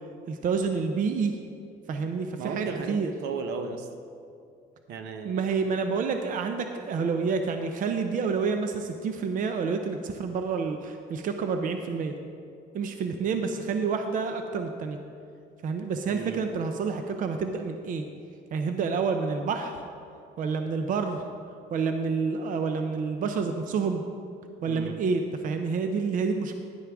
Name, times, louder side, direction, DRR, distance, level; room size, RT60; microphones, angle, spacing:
voice 1, 0.3-1.4 1.9-3.1 5.2-12.2 12.7-15.0 15.6-18.1 18.5-19.8 20.4-21.2 21.7-24.0 24.6-26.5, right 5 dB, 50° right, 6 dB, 0.6 m, -28 dB
voice 2, 2.4-3.9 4.9-5.4 16.1-16.4 24.7-25.0, right 5 dB, 75° right, 7 dB, 0.9 m, -35 dB
11.0 x 9.4 x 3.5 m, 2.4 s
cardioid pair, 110°, 17 cm